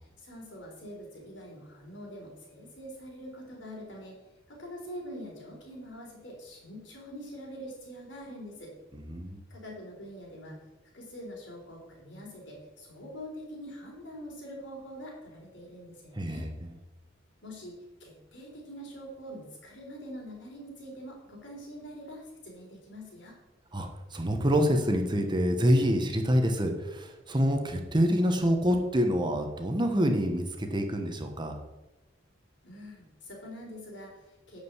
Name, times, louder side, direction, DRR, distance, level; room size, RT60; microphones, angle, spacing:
voice 1, 0.0-4.2 4.5-8.7 9.5-10.6 10.9-16.5 17.4-17.7 18.0-23.4 32.6-34.6, equal, 65° left, -1 dB, 3.9 m, -44 dB
voice 2, 8.9-9.4 16.1-16.5 23.7-31.6, equal, 25° right, 4 dB, 1.1 m, -26 dB
11.0 x 5.1 x 8.2 m, 1.0 s
head